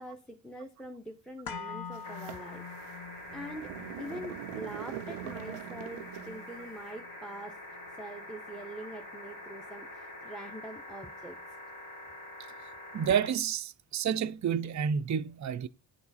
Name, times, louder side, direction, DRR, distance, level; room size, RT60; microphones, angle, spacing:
voice 1, 0.0-2.9 3.3-3.7 4.0-7.6 8.0-11.4, equal, ahead, 0.8 m, -44 dB
sound 1, 1.5-9.5 9.8-9.9, left 6 dB, 45° left, 1.0 m, -47 dB
sound 2, 1.9-6.6, right 13 dB, 85° right, 0.5 m, -43 dB
sound 3, 2.0-13.3 14.7-14.8, left 1 dB, 90° left, 4.0 m, -46 dB
voice 2, 12.9-15.7, right 8 dB, 35° right, 0.5 m, -29 dB
9.3 x 4.7 x 4.1 m
cardioid pair, 50°, 49 cm